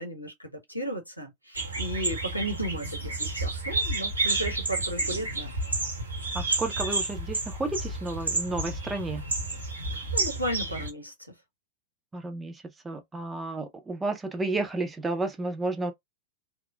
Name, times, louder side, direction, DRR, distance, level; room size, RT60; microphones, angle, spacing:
voice 1, 0.0-5.6 9.9-11.3, right 1 dB, 90° left, 0.8 m, -34 dB
sound 1, 1.6-10.9, right 2 dB, 75° right, 0.9 m, -30 dB
voice 2, 6.3-9.3 12.1-15.9, right 2 dB, 15° right, 0.6 m, -32 dB
3.0 x 2.0 x 2.3 m
figure-of-eight pair, 90°, 0 cm